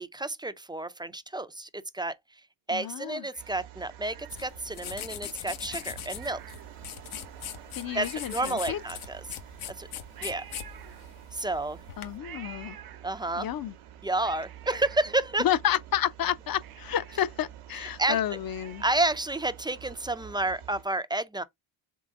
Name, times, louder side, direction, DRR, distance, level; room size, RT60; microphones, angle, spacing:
voice 1, 0.0-2.2 2.7-6.4 7.9-9.4 9.8-9.9 10.2-10.4 11.3-11.8 13.0-13.5 14.0-15.5 17.8-18.2 18.8-21.4, right 2 dB, 10° right, 0.4 m, -30 dB
voice 2, 2.7-3.3 7.8-8.8 12.0-12.8 13.4-13.7 15.4-18.8, left 10 dB, 45° left, 0.6 m, -30 dB
Cat, 3.3-4.8 5.6-7.0 7.5-7.6 7.8-9.3 10.1-11.5 12.2-13.5 13.9-15.9 16.3-16.4 16.6-19.4 19.8-19.9, right 9 dB, 50° right, 0.7 m, -49 dB
sound 1, 3.4-20.8, right 11 dB, 90° right, 1.0 m, -48 dB
sound 2, 4.3-12.2, left 10 dB, 75° left, 0.9 m, -41 dB
3.8 x 3.3 x 3.6 m
cardioid pair, 70°, 49 cm